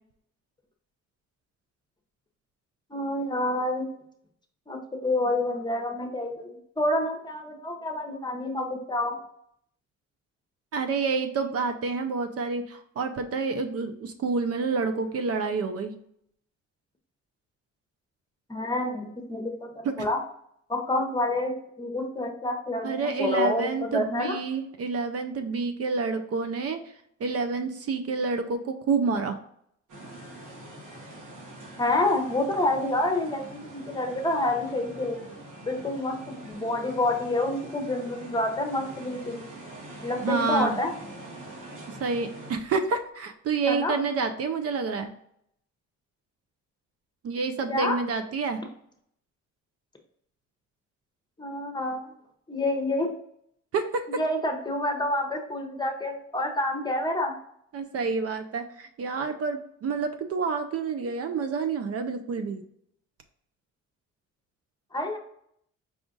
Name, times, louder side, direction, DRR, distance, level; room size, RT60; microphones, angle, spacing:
voice 1, 2.9-3.9 4.7-9.1 18.5-20.2 20.7-21.5 21.8-24.4 31.8-35.2 35.6-39.4 40.0-40.9 43.7-43.9 47.7-48.0 51.4-52.1 52.5-53.1 54.1-57.3 64.9-65.2, left 1 dB, 15° left, 3 dB, 0.9 m, -28 dB
voice 2, 10.7-16.0 19.8-19.9 22.8-26.8 27.2-29.4 40.2-40.8 42.0-45.1 47.2-48.6 53.7-54.0 57.7-62.6, right 4 dB, 50° right, 7 dB, 0.5 m, -28 dB
sound 1, 29.9-42.6, right 1 dB, 80° right, 1.5 m, -44 dB
4.9 x 2.4 x 3.8 m, 0.70 s
cardioid pair, 90°, 30 cm